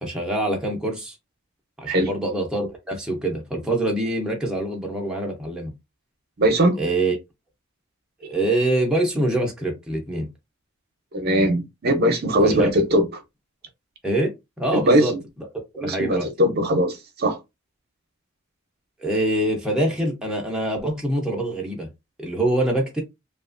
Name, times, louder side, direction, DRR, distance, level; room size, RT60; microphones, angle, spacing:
voice 1, 0.0-1.2 1.8-5.7 6.8-7.2 8.2-10.3 12.4-12.7 14.0-15.1 15.8-16.3 19.0-21.9 22.2-23.0, right 1 dB, 5° right, 0.6 m, -24 dB
voice 2, 6.4-6.8 11.1-13.0 14.7-15.1 15.8-17.4, equal, 50° right, 0.6 m, -20 dB
2.8 x 2.3 x 2.5 m
head